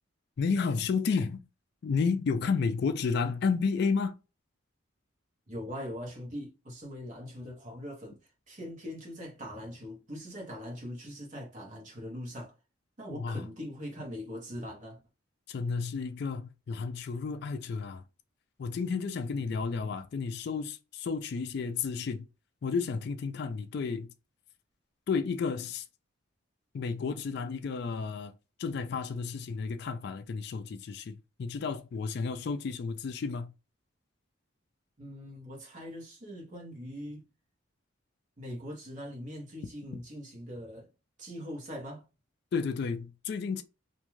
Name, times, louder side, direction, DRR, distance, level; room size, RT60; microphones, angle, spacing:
voice 1, 0.4-1.4 1.8-4.2 13.1-13.4 15.5-18.0 18.6-22.3 22.6-24.1 25.1-25.8 26.7-28.3 28.6-33.5 42.5-43.6, left 5 dB, 55° left, 0.3 m, -32 dB
voice 2, 5.5-8.2 8.5-12.5 13.0-15.0 35.0-37.3 38.4-40.9 41.2-42.0, equal, 40° right, 1.0 m, -41 dB
2.5 x 2.3 x 3.0 m
head